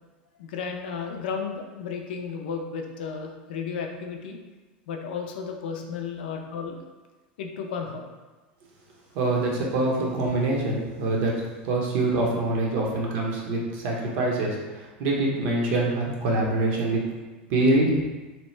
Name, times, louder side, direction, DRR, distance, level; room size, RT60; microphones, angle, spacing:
voice 1, 0.4-4.4 4.9-6.8 7.4-8.1, left 6 dB, 80° left, 3 dB, 0.4 m, -33 dB
voice 2, 9.1-11.3 11.6-17.0 17.5-18.0, right 2 dB, 65° right, -2 dB, 0.8 m, -25 dB
2.9 x 2.1 x 3.1 m, 1.2 s
supercardioid pair, 110°, 5 cm